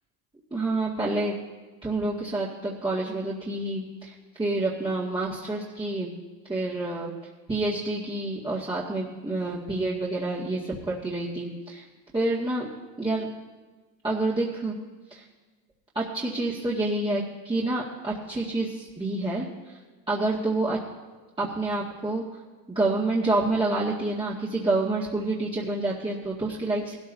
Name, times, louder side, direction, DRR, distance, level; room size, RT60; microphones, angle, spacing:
voice 1, 0.5-1.4 1.8-6.1 6.5-7.1 7.5-11.8 12.1-12.7 13.0-13.3 14.0-14.8 15.1-15.2 15.9-19.8 20.1-20.8 21.4-22.2 22.7-27.0, right 2 dB, 10° right, -7 dB, 2.1 m, -28 dB
19.0 x 13.0 x 2.8 m, 1.3 s
supercardioid pair, 80°, 41 cm